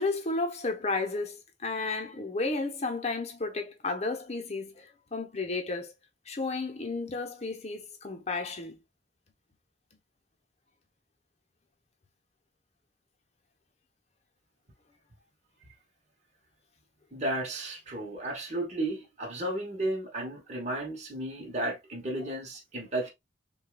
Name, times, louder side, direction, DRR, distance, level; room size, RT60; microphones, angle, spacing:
voice 1, 0.0-5.9 6.3-8.8, left 3 dB, 35° left, 0.8 m, -33 dB
voice 2, 17.1-23.1, right 1 dB, 40° right, 1.0 m, -33 dB
6.3 x 2.4 x 2.3 m
head